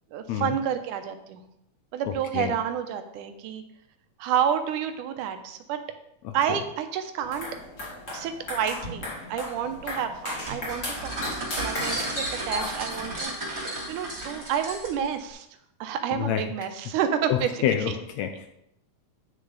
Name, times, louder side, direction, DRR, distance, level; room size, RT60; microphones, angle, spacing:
voice 1, 0.1-1.4 1.9-3.6 4.2-5.8 6.3-7.5 8.1-11.1 11.4-13.6 13.9-15.5 15.8-18.0, right 8 dB, 80° right, 8 dB, 2.3 m, -29 dB
voice 2, 2.0-2.5 6.2-6.3 16.1-16.5 17.3-18.5, left 9 dB, 75° left, 7 dB, 1.7 m, -28 dB
sound 1, 7.2-13.2, left 1 dB, 25° left, 2.3 m, -35 dB
sound 2, 10.5-15.1, right 1 dB, 35° right, 3.4 m, -34 dB
10.0 x 6.4 x 4.0 m, 0.78 s
omnidirectional pair, 3.6 m